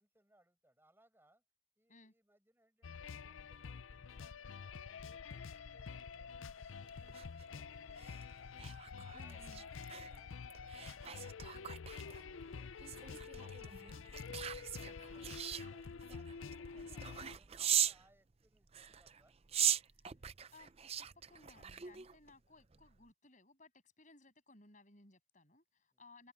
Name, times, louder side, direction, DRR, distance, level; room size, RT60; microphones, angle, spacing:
voice 1, 0.0-1.4 1.8-8.7 9.0-13.6 14.0-19.3 25.9-26.1, right 1 dB, 10° right, 7.7 m, -72 dB
sound 1, 2.8-17.4, left 5 dB, 75° left, 0.6 m, -48 dB
sound 2, 6.9-18.1 18.7-22.3 22.7-23.0, right 10 dB, 30° right, 0.5 m, -40 dB
voice 2, 9.1-9.6 13.1-13.2 20.0-20.1 20.5-23.7 24.0-26.3, left 2 dB, 40° left, 7.8 m, -62 dB
head